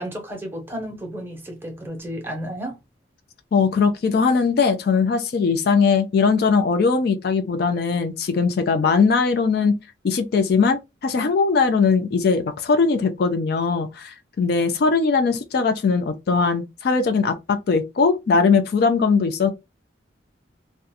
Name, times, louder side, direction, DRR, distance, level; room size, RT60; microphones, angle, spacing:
voice 1, 0.0-2.8, equal, 10° right, 0.7 m, -32 dB
voice 2, 3.5-9.8 10.0-19.5, left 5 dB, 55° left, 0.3 m, -20 dB
2.4 x 2.2 x 2.7 m
head